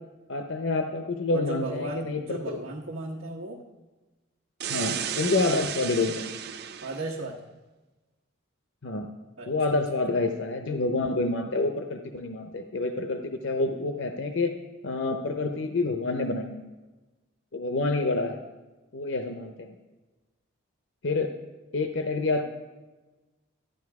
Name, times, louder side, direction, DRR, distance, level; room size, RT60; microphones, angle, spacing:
voice 1, 0.3-2.6 4.7-6.3 8.8-9.1 9.4-14.5 14.8-16.6 17.5-18.4 18.9-19.7 21.0-21.3 21.7-22.5, left 3 dB, 60° left, 5 dB, 0.7 m, -28 dB
voice 2, 1.3-3.6 6.8-7.4 9.4-9.5, right 2 dB, 85° right, -5 dB, 1.4 m, -35 dB
sound 1, 4.6-7.1, right 8 dB, 50° right, 0.5 m, -33 dB
13.0 x 10.0 x 4.8 m, 1.2 s
head